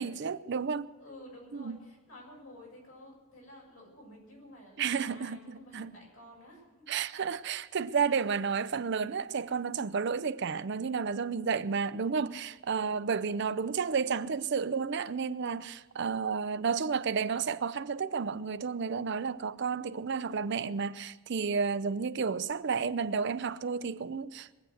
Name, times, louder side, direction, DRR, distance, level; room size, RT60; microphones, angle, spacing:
voice 1, 0.0-0.9 1.5-1.8 4.8-5.9 6.9-24.5, right 5 dB, 50° right, 0.5 m, -31 dB
voice 2, 1.0-6.9 12.7-13.4, left 1 dB, 75° left, 7.0 m, -52 dB
22.5 x 7.8 x 7.8 m
head